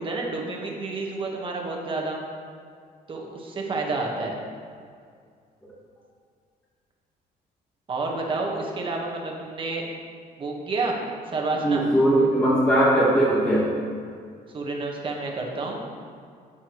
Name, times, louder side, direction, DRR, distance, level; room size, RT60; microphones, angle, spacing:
voice 1, 0.0-2.2 3.1-4.3 7.9-9.8 10.4-11.0 11.2-11.9 14.5-15.8, right 3 dB, 30° right, 0 dB, 1.4 m, -29 dB
voice 2, 11.6-13.7, right 1 dB, 10° left, -6 dB, 1.4 m, -19 dB
10.5 x 8.2 x 3.1 m, 2.2 s
cardioid pair, 160°, 17 cm